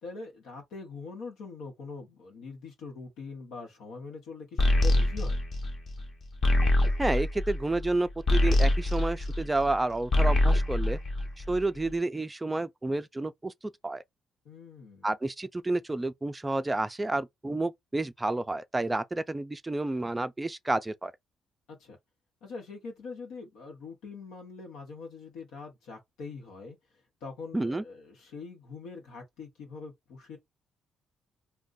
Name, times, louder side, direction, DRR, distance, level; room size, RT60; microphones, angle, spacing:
voice 1, 0.0-5.4 14.4-15.1 21.7-22.0 22.4-26.8 27.2-30.4, left 4 dB, 90° left, 0.9 m, -43 dB
sound 1, 4.6-9.8 10.0-11.8, left 1 dB, 45° left, 0.9 m, -25 dB
voice 2, 7.0-11.0 11.4-13.5 13.8-14.0 15.0-21.1 27.5-27.8, right 2 dB, 15° right, 0.4 m, -30 dB
2.5 x 2.2 x 3.9 m
cardioid pair, 90°, 0 cm